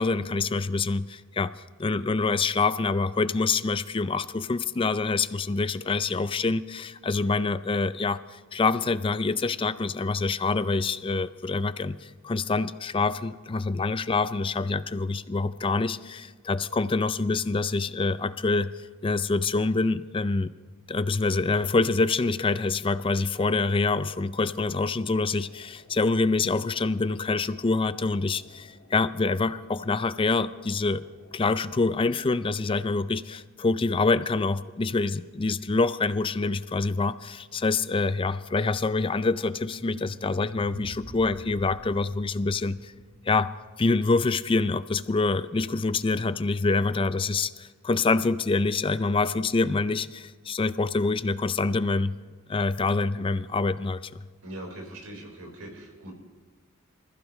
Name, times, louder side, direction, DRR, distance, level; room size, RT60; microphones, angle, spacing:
voice 1, 0.0-1.5 1.8-20.5 20.9-31.0 31.3-42.9 43.2-43.5 43.8-52.2 52.5-54.1, left 3 dB, 25° left, 14 dB, 0.4 m, -26 dB
sound 1, 24.3-32.6, left 2 dB, 70° left, 2.1 m, -56 dB
sound 2, 39.5-44.4, right 1 dB, 50° right, 1.2 m, -47 dB
voice 2, 54.4-56.1, right 1 dB, 90° right, 0 dB, 4.6 m, -41 dB
25.5 x 15.0 x 3.2 m, 1.4 s
head